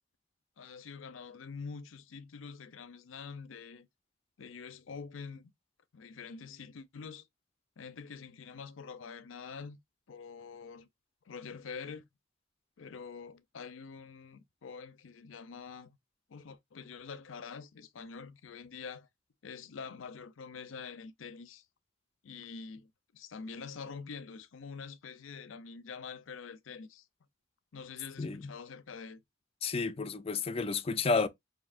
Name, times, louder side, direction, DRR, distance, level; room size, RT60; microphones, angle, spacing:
voice 1, 0.6-3.9 4.4-5.5 5.9-7.3 7.8-9.8 10.1-10.9 11.3-12.1 12.8-16.0 16.3-19.1 19.4-21.6 22.2-27.1 27.7-29.2, left 5 dB, 80° left, 0.5 m, -46 dB
voice 2, 28.2-28.5 29.6-31.3, left 4 dB, 30° left, 0.4 m, -31 dB
5.2 x 2.7 x 2.4 m
head